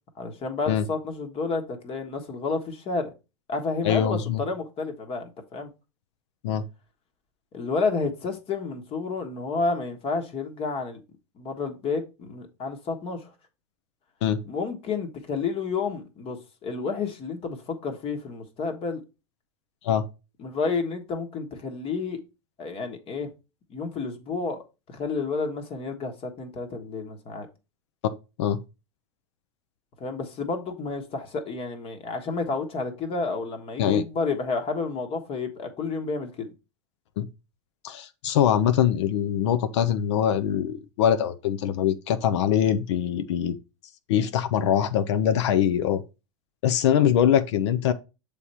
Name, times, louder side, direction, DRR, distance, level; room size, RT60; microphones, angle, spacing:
voice 1, 0.2-3.1 3.5-5.7 7.5-11.0 11.4-13.3 14.4-19.0 20.4-22.2 22.6-23.3 23.7-27.5 30.0-36.5, left 4 dB, 40° left, 1.3 m, -30 dB
voice 2, 3.8-4.4 6.4-6.6 14.2-14.4 19.8-20.0 28.4-28.6 33.8-34.0 37.2-37.3 37.8-43.6 44.1-46.0 46.6-47.9, left 9 dB, 70° left, 0.6 m, -23 dB
7.0 x 3.4 x 4.2 m
hypercardioid pair, 95°, 16 cm